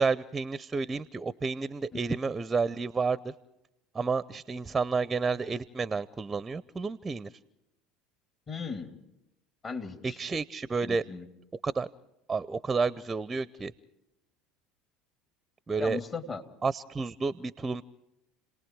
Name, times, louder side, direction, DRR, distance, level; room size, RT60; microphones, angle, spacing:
voice 1, 0.0-3.3 3.9-7.3 10.0-11.0 11.6-11.9 12.3-13.7 15.7-16.0 16.6-17.8, right 4 dB, 20° right, 18 dB, 0.7 m, -30 dB
voice 2, 8.5-9.0 9.6-10.2 10.8-11.3 15.8-16.4, left 5 dB, 35° left, 6 dB, 3.0 m, -37 dB
30.0 x 19.0 x 4.7 m, 0.90 s
hypercardioid pair, 75°, 0 cm